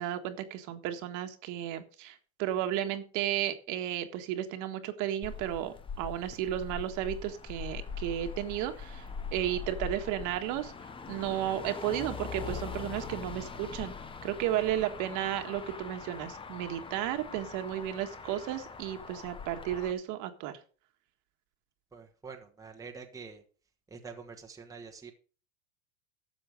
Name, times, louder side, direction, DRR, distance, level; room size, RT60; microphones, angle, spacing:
voice 1, 0.0-9.1 9.3-10.7 11.1-13.9 14.2-20.6, right 12 dB, 45° right, 7 dB, 1.7 m, -33 dB
Motor vehicle (road), 5.2-19.9, left 5 dB, 10° left, 0.8 m, -42 dB
voice 2, 21.9-23.4 23.9-25.1, right 5 dB, 10° right, 3 dB, 1.3 m, -46 dB
13.0 x 7.6 x 5.1 m, 0.39 s
supercardioid pair, 130°, 42 cm